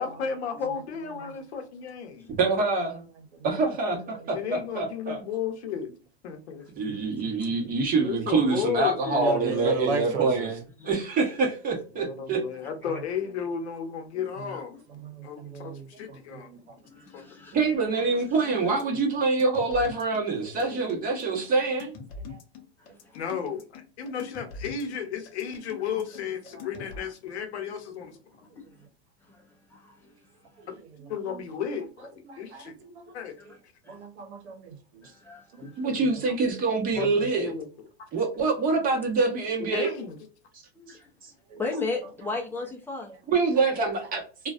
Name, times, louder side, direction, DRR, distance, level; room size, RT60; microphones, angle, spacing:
voice 1, 0.0-2.4 4.3-5.9 6.2-6.6 8.0-9.7 11.9-14.8 15.2-15.7 16.0-16.5 17.1-17.2 23.1-28.2 31.1-32.7 33.1-33.4 37.0-37.1 37.4-37.7 39.6-40.1, left 7 dB, 85° left, 0.8 m, -33 dB
voice 2, 0.7-1.3 3.2-3.5 4.1-4.5 7.2-7.7 9.1-10.5 12.1-12.3 12.8-13.3 14.1-16.8 20.6-21.2 22.2-22.4 22.9-23.0 26.4-26.9 30.6-31.4 32.2-33.2 33.5-33.6 33.9-35.1 35.5-36.1 36.9-37.3 41.5-41.6 42.3-42.4 43.1-43.2 43.7-43.9, right 4 dB, 90° right, 0.8 m, -38 dB
voice 3, 2.3-3.1 3.4-5.2 6.8-10.6 10.8-12.4 17.5-21.9 35.8-37.5 38.1-39.9 40.9-41.3 43.3-44.5, right 3 dB, 25° right, 1.0 m, -26 dB
voice 4, 14.5-14.8 16.9-18.9 20.7-20.8 22.8-23.2 23.5-23.6 28.5-28.9 29.2-30.3 30.6-30.7 33.4-33.6 33.8-34.1 35.0-35.9 40.7-41.1 41.6-43.1, left 3 dB, 5° left, 0.5 m, -38 dB
sound 1, 18.8-27.0, left 5 dB, 40° left, 0.7 m, -43 dB
2.4 x 2.2 x 2.4 m
supercardioid pair, 130°, 33 cm